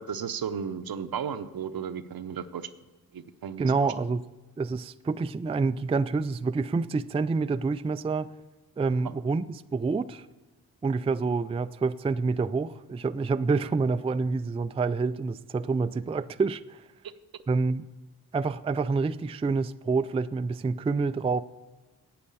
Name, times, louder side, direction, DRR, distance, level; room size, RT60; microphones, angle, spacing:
voice 1, 0.0-2.7 3.1-3.7, right 7 dB, 65° right, 11 dB, 0.8 m, -34 dB
voice 2, 3.6-4.2 4.6-8.3 8.8-10.3 10.8-16.8 17.5-17.9 18.3-21.4, right 4 dB, 15° right, 12 dB, 0.3 m, -27 dB
9.6 x 7.7 x 8.6 m, 1.2 s
cardioid pair, 65°, 38 cm